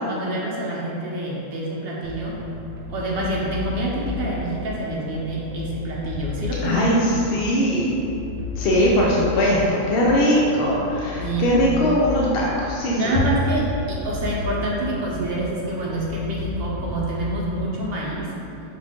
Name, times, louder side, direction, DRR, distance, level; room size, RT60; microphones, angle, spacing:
voice 1, 0.1-2.4 2.9-6.8 11.2-11.5 12.9-18.3, right 2 dB, 55° right, -5 dB, 0.8 m, -27 dB
sound 1, 2.0-18.0, left 4 dB, 85° right, 1.1 m, -33 dB
voice 2, 6.6-7.9 8.6-13.0, equal, 55° left, -5 dB, 0.7 m, -20 dB
5.7 x 2.4 x 3.5 m, 2.8 s
omnidirectional pair, 1.4 m